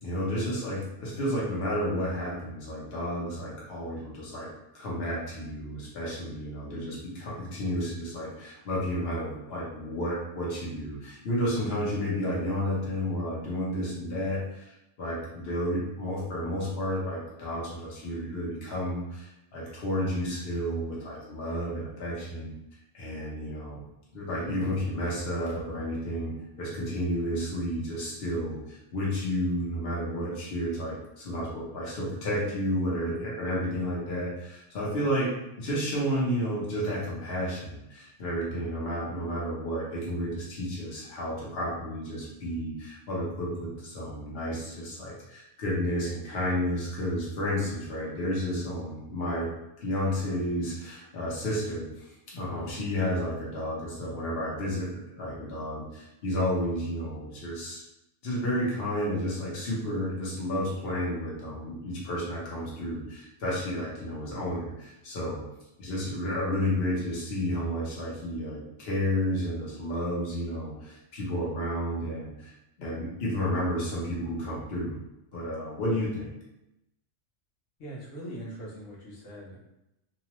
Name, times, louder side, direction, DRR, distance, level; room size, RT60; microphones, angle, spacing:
voice 1, 0.0-22.5 22.9-23.8 24.1-35.3 35.6-49.5 49.8-54.9 55.1-57.8 58.2-65.4 65.8-74.9 75.3-76.3, equal, 55° left, -5 dB, 1.1 m, -31 dB
voice 2, 77.8-79.6, right 1 dB, 90° left, -5 dB, 1.2 m, -41 dB
2.9 x 2.1 x 2.9 m, 0.89 s
omnidirectional pair, 1.3 m